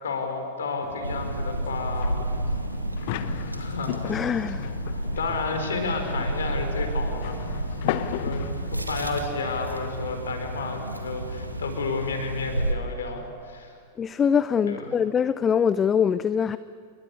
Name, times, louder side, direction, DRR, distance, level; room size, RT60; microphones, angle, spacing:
voice 1, 0.0-2.2 3.3-4.3 5.2-7.5 8.1-13.7 14.6-14.9, left 4 dB, 65° left, 6 dB, 4.8 m, -32 dB
sound 1, 0.8-9.8, left 13 dB, 50° left, 1.0 m, -36 dB
sound 2, 1.0-12.7, right 1 dB, 85° right, 2.0 m, -31 dB
voice 2, 4.1-4.7 14.0-16.6, left 7 dB, 20° left, 15 dB, 0.6 m, -23 dB
29.0 x 23.0 x 8.5 m, 2.2 s
figure-of-eight pair, 90°, 0 cm